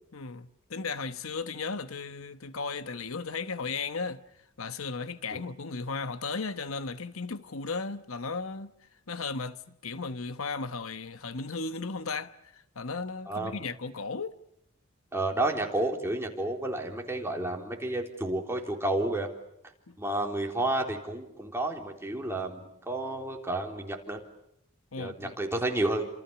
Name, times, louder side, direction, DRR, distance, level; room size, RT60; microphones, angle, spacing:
voice 1, 0.1-4.2 4.6-8.7 9.1-12.3 12.7-14.3 19.9-20.0 24.9-25.3, left 4 dB, 70° left, 1.1 m, -35 dB
voice 2, 13.3-13.6 15.1-19.3 20.0-24.2 25.0-26.1, right 1 dB, 10° right, 3.8 m, -31 dB
30.0 x 27.0 x 7.1 m
head